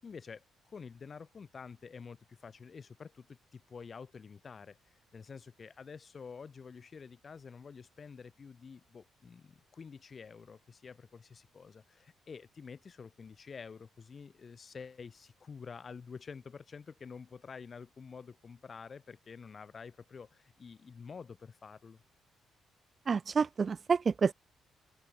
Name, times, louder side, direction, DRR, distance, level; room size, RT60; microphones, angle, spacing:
voice 1, 0.0-22.0, left 5 dB, 40° left, 5.3 m, -49 dB
voice 2, 23.1-24.3, right 5 dB, 40° right, 1.0 m, -28 dB
open air
cardioid pair, 90°, 0 cm